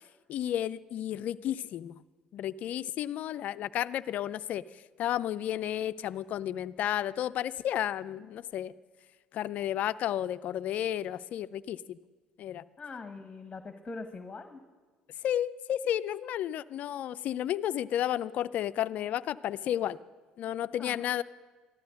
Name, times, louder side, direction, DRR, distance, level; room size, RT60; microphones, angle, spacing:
voice 1, 0.3-1.9 2.3-4.6 5.0-8.7 9.3-12.0 12.4-12.6 15.2-20.0 20.4-21.2, left 11 dB, 60° left, 16 dB, 0.5 m, -32 dB
voice 2, 12.8-14.6 20.8-21.0, left 3 dB, 25° left, 8 dB, 1.3 m, -42 dB
14.5 x 12.5 x 6.4 m, 1.4 s
hypercardioid pair, 60°, 3 cm